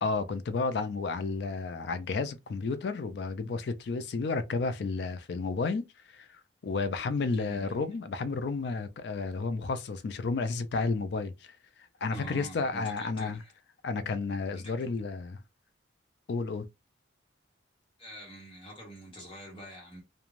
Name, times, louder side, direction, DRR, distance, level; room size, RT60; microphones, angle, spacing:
voice 1, 0.0-5.8 6.1-11.6 12.0-13.4 13.8-15.4 16.3-16.7, left 4 dB, 60° left, 0.3 m, -32 dB
voice 2, 7.4-7.8 12.1-13.5 14.5-14.9 18.0-20.0, right 1 dB, 30° left, 1.0 m, -46 dB
2.4 x 2.2 x 3.0 m
head